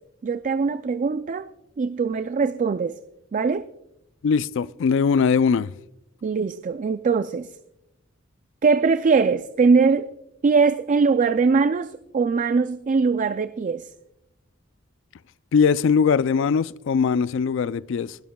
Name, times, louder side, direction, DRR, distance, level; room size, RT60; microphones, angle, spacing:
voice 1, 0.2-1.5 1.8-3.0 3.3-3.7 6.2-7.5 8.6-10.1 10.4-13.9, right 4 dB, 40° right, 0.3 m, -21 dB
voice 2, 4.2-5.7 15.5-18.2, left 6 dB, 65° left, 0.4 m, -21 dB
21.0 x 12.5 x 2.3 m
head